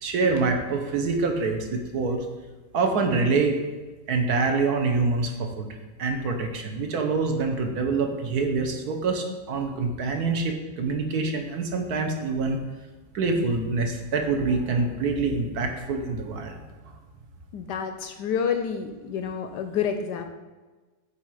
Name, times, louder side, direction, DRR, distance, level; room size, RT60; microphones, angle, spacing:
voice 1, 0.0-2.2 2.7-3.6 4.1-5.7 6.0-12.6 13.1-16.5, right 4 dB, 60° right, 5 dB, 1.3 m, -25 dB
voice 2, 17.5-20.3, left 7 dB, 75° left, 6 dB, 1.0 m, -28 dB
8.5 x 4.3 x 4.7 m, 1.3 s
omnidirectional pair, 2.1 m